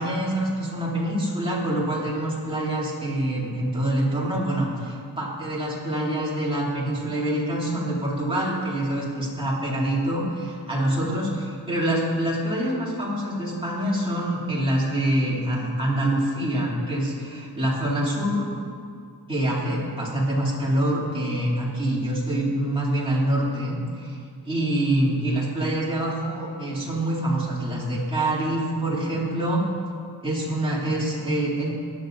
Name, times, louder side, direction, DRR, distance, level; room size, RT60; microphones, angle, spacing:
voice 1, 0.0-18.5 19.3-24.2 24.5-29.6 30.2-31.7, right 1 dB, 15° right, -6 dB, 2.8 m, -25 dB
18.0 x 11.5 x 2.6 m, 2.2 s
wide cardioid pair, 155°, 38 cm